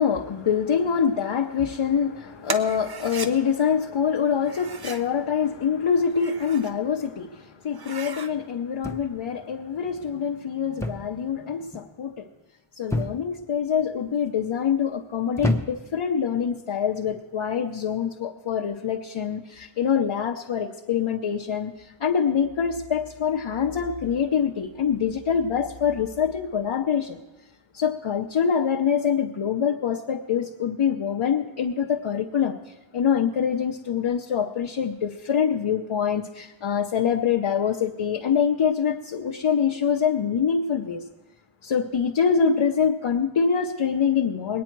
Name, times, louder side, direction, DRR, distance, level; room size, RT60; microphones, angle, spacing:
voice 1, 0.0-12.3 12.8-27.2 27.7-41.0 41.6-44.6, left 7 dB, 70° left, 0 dB, 0.8 m, -25 dB
sound 1, 2.4-3.3 4.4-5.1 6.0-6.8 7.2-7.3 7.7-8.3, right 4 dB, 50° right, 0.8 m, -36 dB
sound 2, 8.8-9.4 10.8-11.2 11.5-11.9 12.9-13.4 14.2-14.5 15.4-16.0 17.0-17.2, left 1 dB, 5° left, 0.8 m, -29 dB
20.5 x 9.4 x 4.6 m, 1.1 s
wide cardioid pair, 80°, 49 cm